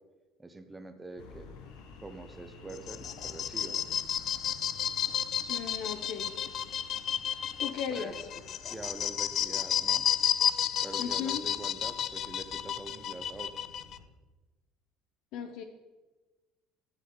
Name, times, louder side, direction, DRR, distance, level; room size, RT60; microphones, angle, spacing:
voice 1, 0.4-1.5 2.0-3.9 7.9-8.2 8.6-10.1 10.8-13.6, right 2 dB, 10° right, 7 dB, 0.7 m, -44 dB
sound 1, 1.2-14.1, left 4 dB, 85° left, 1.1 m, -52 dB
sound 2, 2.7-14.0, left 9 dB, 40° left, 0.3 m, -32 dB
voice 2, 5.5-6.3 7.6-8.3 11.0-11.4 15.3-15.6, left 7 dB, 70° left, 7 dB, 0.7 m, -36 dB
10.5 x 8.0 x 3.8 m, 1.2 s
cardioid pair, 145°, 0 cm